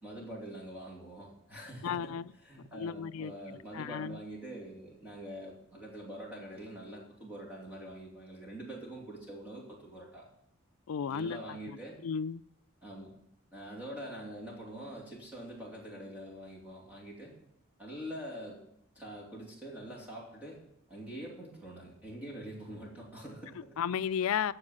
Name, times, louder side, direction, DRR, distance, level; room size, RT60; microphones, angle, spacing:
voice 1, 0.0-2.1 2.4-10.2 11.1-12.0 12.8-13.1 13.5-17.3 17.8-18.6 18.9-20.6 20.9-23.9, right 1 dB, 5° right, 2.8 m, -45 dB
voice 2, 1.8-2.2 2.7-3.3 3.7-4.2 10.9-11.4 12.0-12.4 23.8-24.5, left 7 dB, 75° left, 0.4 m, -33 dB
13.5 x 4.8 x 7.7 m
head